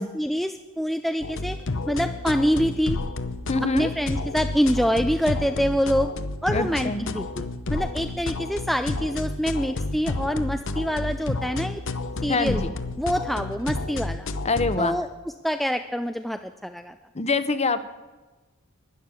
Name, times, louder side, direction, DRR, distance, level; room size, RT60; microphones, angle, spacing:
voice 1, 0.0-1.6 1.9-3.0 3.7-6.1 6.4-11.8 12.2-12.6 13.0-14.3 14.8-15.1 15.4-16.9, equal, ahead, 7 dB, 0.4 m, -26 dB
sound 1, 1.2-14.8, left 2 dB, 60° left, 0.9 m, -31 dB
voice 2, 3.5-3.9 6.5-7.0 12.3-12.7 14.4-14.9 17.1-17.8, left 3 dB, 30° left, 12 dB, 0.9 m, -24 dB
12.0 x 10.5 x 8.2 m, 1.2 s
head